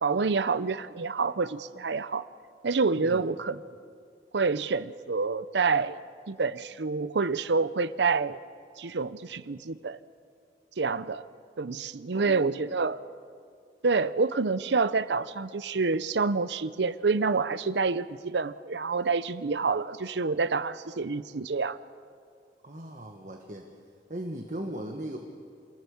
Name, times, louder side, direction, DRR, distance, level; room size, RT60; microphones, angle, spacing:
voice 1, 0.0-2.3 2.6-3.6 4.3-6.0 6.3-8.4 8.8-10.0 10.8-11.2 11.6-13.0 13.8-21.8, right 4 dB, 80° right, 15 dB, 0.7 m, -27 dB
voice 2, 12.1-12.5 22.6-23.7 24.1-25.2, right 1 dB, 45° right, 2 dB, 1.4 m, -38 dB
27.0 x 16.5 x 7.1 m, 2.2 s
head